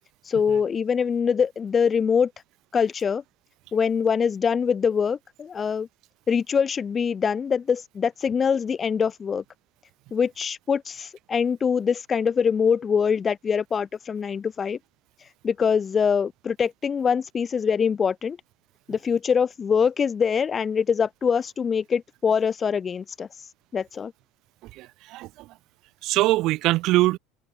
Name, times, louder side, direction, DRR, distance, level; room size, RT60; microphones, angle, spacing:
voice 1, 0.3-2.3 2.7-3.2 3.7-5.9 6.3-9.4 10.1-14.8 15.4-18.4 18.9-23.3 23.7-24.1, left 6 dB, 25° left, 7.5 m, -24 dB
voice 2, 24.7-25.5 26.0-27.2, right 18 dB, 55° right, 1.6 m, -23 dB
open air
cardioid pair, 145°, 0 cm